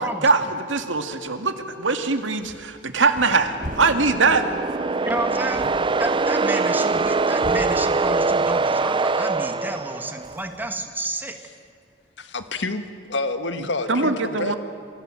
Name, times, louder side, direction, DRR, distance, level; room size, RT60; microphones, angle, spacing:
voice 1, 0.0-4.4 13.9-14.5, right 4 dB, 85° right, 7 dB, 2.1 m, -22 dB
sound 1, 2.2-10.7, equal, 45° right, 4.1 m, -42 dB
sound 2, 3.4-10.4, right 3 dB, 25° right, 0.5 m, -23 dB
voice 2, 5.0-5.7 6.0-11.4, right 1 dB, 10° right, 5 dB, 2.0 m, -30 dB
voice 3, 12.2-12.8 13.1-14.5, left 2 dB, 70° left, 9 dB, 1.7 m, -28 dB
28.0 x 24.0 x 7.6 m, 2.4 s
head